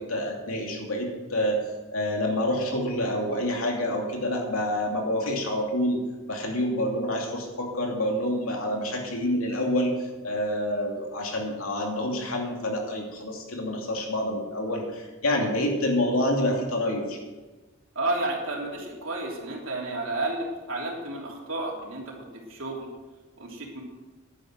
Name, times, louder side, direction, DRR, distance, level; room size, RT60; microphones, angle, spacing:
voice 1, 0.0-1.6 1.9-6.0 6.3-17.3, left 1 dB, 90° left, 1 dB, 2.7 m, -27 dB
voice 2, 17.9-22.2 22.5-22.9 23.4-23.8, right 2 dB, 70° right, -2 dB, 3.2 m, -31 dB
11.0 x 9.7 x 6.2 m, 1.2 s
head